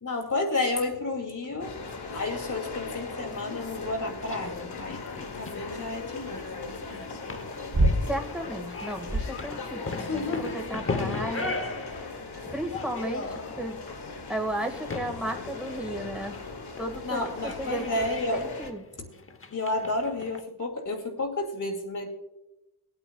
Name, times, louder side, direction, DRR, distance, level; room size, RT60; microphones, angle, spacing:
voice 1, 0.0-1.8 2.1-5.0 5.3-6.7 10.0-10.6 17.0-18.4 19.5-22.1, left 2 dB, 55° left, 2 dB, 2.7 m, -31 dB
sound 1, 1.6-18.7, left 4 dB, 85° left, 1.6 m, -39 dB
sound 2, 4.2-20.4, left 3 dB, 35° left, 0.9 m, -38 dB
sound 3, 5.0-10.5, right 1 dB, 45° right, 3.4 m, -29 dB
voice 2, 8.1-11.6 12.0-12.1 12.5-13.8 14.3-16.4 16.8-17.3 17.6-18.0 18.3-18.8, right 1 dB, 5° right, 2 dB, 1.8 m, -34 dB
22.5 x 8.8 x 2.3 m, 0.93 s
wide cardioid pair, 90°, 38 cm